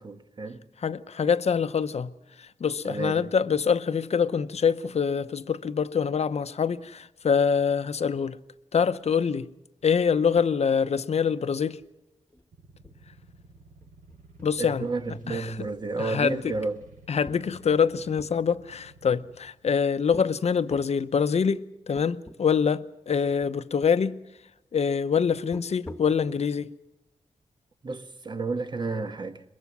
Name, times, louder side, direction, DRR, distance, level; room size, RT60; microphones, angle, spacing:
voice 1, 0.0-0.6 2.9-3.3 14.6-16.8 27.8-29.4, right 3 dB, 35° right, 1.3 m, -31 dB
voice 2, 0.8-2.1 2.4-8.4 8.7-9.5 9.8-11.8 14.4-14.9 15.3-15.7 16.0-16.5 17.1-24.2 24.7-26.7, left 6 dB, 55° left, 0.8 m, -25 dB
sound 1, 10.4-10.9 11.1-11.2 11.6-11.9 12.3-12.4 12.8-15.0 15.3-16.0 16.5-18.4 19.1-19.7 20.1-20.3 20.7-21.0 21.6-21.7 22.0-22.4 22.7-22.8 23.4-24.0 25.4-26.2, left 1 dB, 10° left, 1.4 m, -46 dB
sound 2, 12.5-19.4, right 2 dB, 85° right, 8.0 m, -53 dB
22.5 x 22.0 x 6.0 m
wide cardioid pair, 145°, 13 cm